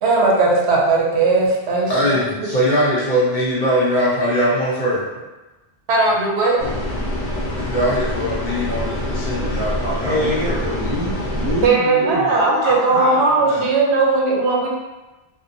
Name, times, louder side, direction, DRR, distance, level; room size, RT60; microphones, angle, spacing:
voice 1, 0.0-2.5 5.9-6.7 11.6-14.7, right 3 dB, 90° right, -2 dB, 0.9 m, -18 dB
voice 2, 1.9-5.0 7.6-10.6, equal, 55° left, -7 dB, 0.7 m, -21 dB
sound 1, 6.6-11.7, left 1 dB, 85° left, 0.9 m, -25 dB
voice 3, 10.0-13.7, equal, 30° right, -9 dB, 0.9 m, -25 dB
2.7 x 2.1 x 2.5 m, 1.1 s
omnidirectional pair, 1.1 m